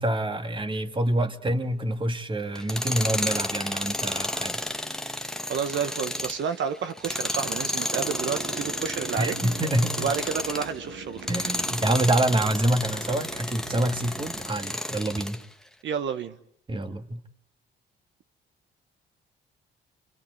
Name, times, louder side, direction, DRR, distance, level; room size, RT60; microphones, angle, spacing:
voice 1, 0.0-4.6 9.2-10.1 11.3-15.4 16.7-17.2, right 1 dB, 25° right, 2.1 m, -26 dB
Tools, 2.5-10.7 11.2-15.4, left 1 dB, 5° left, 1.4 m, -31 dB
voice 2, 5.5-9.3 10.0-11.3 15.8-16.4, right 7 dB, 70° right, 1.3 m, -30 dB
sound 1, 7.9-14.5, right 4 dB, 90° right, 5.2 m, -43 dB
27.0 x 26.0 x 8.0 m
cardioid pair, 90°, 20 cm